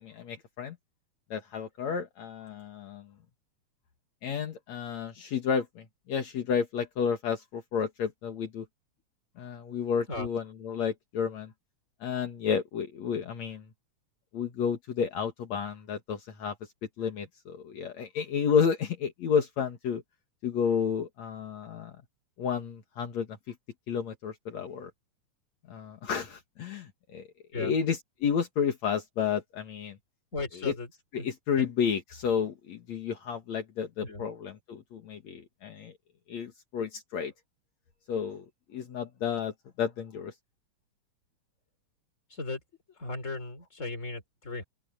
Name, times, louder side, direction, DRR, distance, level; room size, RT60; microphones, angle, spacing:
voice 1, 0.0-0.8 1.3-3.1 4.2-8.7 9.4-11.5 12.0-13.6 14.3-16.5 17.0-20.0 20.4-21.9 22.4-23.5 23.9-24.9 25.7-27.3 27.5-30.0 30.5-30.7 31.1-35.9 36.3-37.3 38.1-38.4 38.7-40.3, left 7 dB, 65° left, 3.0 m, -31 dB
voice 2, 30.3-30.9 31.2-31.7 34.0-34.3 42.3-42.6 43.0-44.6, left 2 dB, 25° left, 4.7 m, -36 dB
open air
omnidirectional pair, 3.4 m